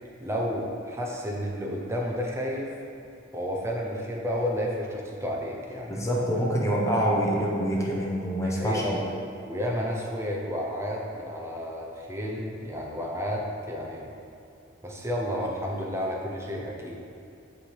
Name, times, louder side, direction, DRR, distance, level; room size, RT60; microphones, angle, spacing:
voice 1, 0.2-2.7 3.3-6.1 8.4-9.0 9.4-14.1 14.8-17.0, equal, 15° right, -1 dB, 0.8 m, -31 dB
voice 2, 5.9-9.1, equal, 15° left, -4 dB, 0.9 m, -26 dB
7.2 x 3.4 x 4.7 m, 2.6 s
head